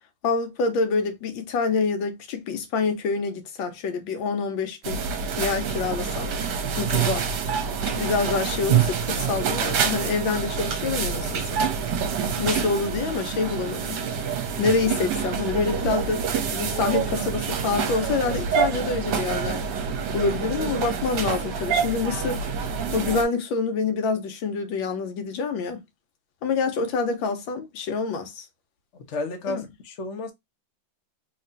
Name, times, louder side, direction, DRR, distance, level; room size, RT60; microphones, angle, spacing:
voice 1, 0.2-5.0 5.4-6.3 6.8-7.2 7.9-11.6 12.4-14.0 14.6-22.4 22.9-25.8 26.4-28.4 29.5-29.6, left 4 dB, 80° left, 1.4 m, -27 dB
sound 1, 4.8-23.2, right 7 dB, 70° right, 1.2 m, -27 dB
voice 2, 29.1-30.3, left 2 dB, 55° left, 0.8 m, -32 dB
3.3 x 2.9 x 2.5 m
omnidirectional pair, 2.2 m